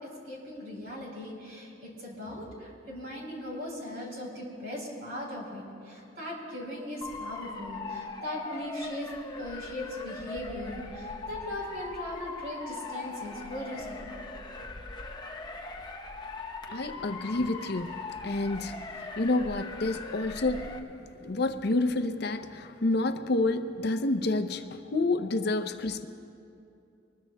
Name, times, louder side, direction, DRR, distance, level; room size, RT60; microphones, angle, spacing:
voice 1, 0.0-9.1 9.4-14.0 14.4-14.5, left 1 dB, 55° right, -1 dB, 3.9 m, -39 dB
Motor vehicle (road) / Siren, 7.0-20.8, left 3 dB, 25° left, 0.8 m, -40 dB
voice 2, 16.7-17.9 18.2-18.8 19.2-20.7 21.2-26.1, left 2 dB, 55° left, 8 dB, 0.6 m, -29 dB
25.0 x 20.5 x 2.2 m, 2.6 s
head